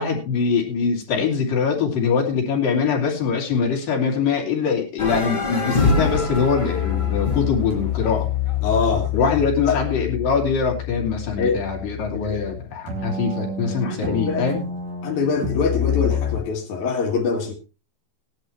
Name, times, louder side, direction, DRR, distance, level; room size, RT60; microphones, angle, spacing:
voice 1, 0.0-8.3 9.1-14.7, left 5 dB, 80° left, 4.4 m, -23 dB
sound 1, 5.0-9.2, left 2 dB, 15° left, 1.7 m, -25 dB
sound 2, 6.3-12.6 12.9-16.4, left 8 dB, 55° right, 3.5 m, -27 dB
voice 2, 8.6-9.1 9.7-9.8 11.4-11.6 12.1-12.6 13.8-14.5 15.0-17.5, left 5 dB, 60° left, 3.2 m, -24 dB
17.5 x 10.5 x 3.2 m
omnidirectional pair, 3.9 m